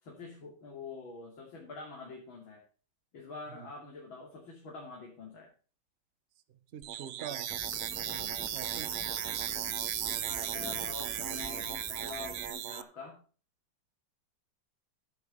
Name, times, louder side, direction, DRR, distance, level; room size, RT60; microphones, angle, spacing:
voice 1, 0.0-2.6 3.1-5.5 8.1-8.4 10.0-13.2, left 4 dB, 80° left, 3.4 m, -46 dB
voice 2, 6.5-7.6 8.5-8.9, right 8 dB, 45° right, 0.9 m, -45 dB
sound 1, 6.8-12.8, right 10 dB, 85° right, 0.6 m, -36 dB
sound 2, 7.5-12.5, left 1 dB, 10° left, 1.0 m, -49 dB
9.9 x 8.8 x 5.5 m
omnidirectional pair, 2.1 m